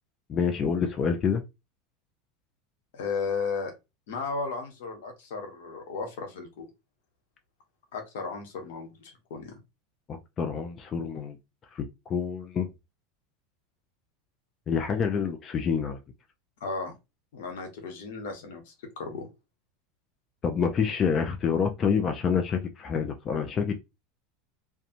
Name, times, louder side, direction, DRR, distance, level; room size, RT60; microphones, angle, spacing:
voice 1, 0.3-1.4 10.1-11.4 11.7-12.7 14.7-16.0 20.4-23.8, left 6 dB, 30° left, 0.4 m, -27 dB
voice 2, 2.9-3.7 4.1-6.7 7.9-9.6 16.6-16.9 17.3-19.3, left 4 dB, 75° left, 1.0 m, -35 dB
2.5 x 2.2 x 2.8 m
supercardioid pair, 115°, 0 cm